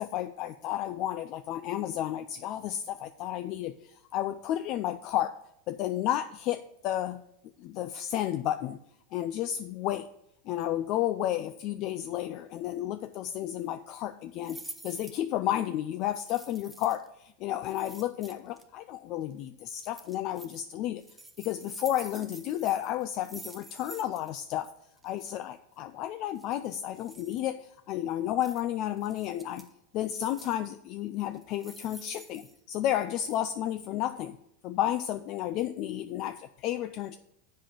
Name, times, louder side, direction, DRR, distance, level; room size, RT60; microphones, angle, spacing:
voice 1, 0.0-5.3 5.7-7.2 7.6-8.8 9.1-10.1 10.5-21.0 21.4-24.7 25.0-29.7 29.9-34.4 34.6-37.2, left 12 dB, 50° left, 11 dB, 0.4 m, -32 dB
sound 1, 14.4-15.2 16.2-17.1 17.6-18.6 19.7-20.6 21.0-24.3 24.6-24.7 25.0-25.3 26.4-27.4 28.4-28.6 29.0-29.7 30.1-30.7 31.3-33.0 33.3-33.4, right 2 dB, 5° right, 0.8 m, -48 dB
7.6 x 5.4 x 7.0 m, 0.77 s
supercardioid pair, 130°, 0 cm